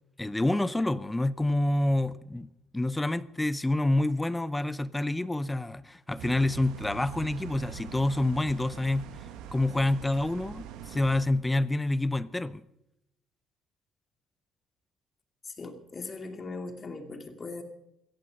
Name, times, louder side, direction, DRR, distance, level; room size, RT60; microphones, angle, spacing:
voice 1, 0.2-9.1 9.5-12.6, left 2 dB, 10° left, 0.6 m, -27 dB
sound 1, 6.2-11.2, right 8 dB, 85° right, 1.6 m, -43 dB
voice 2, 15.4-17.6, left 3 dB, 30° left, 2.6 m, -39 dB
16.5 x 14.5 x 5.2 m
cardioid pair, 120°, 0 cm